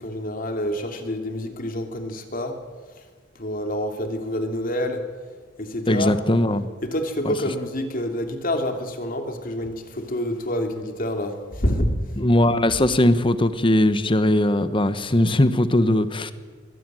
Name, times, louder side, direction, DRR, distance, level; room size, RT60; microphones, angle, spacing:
voice 1, 0.0-2.6 3.3-5.0 5.6-6.1 6.8-11.9, left 1 dB, 50° left, 5 dB, 2.8 m, -27 dB
voice 2, 5.9-6.7 7.2-7.3 12.2-16.3, left 1 dB, 25° left, 12 dB, 1.2 m, -19 dB
22.5 x 17.0 x 9.2 m, 1.5 s
head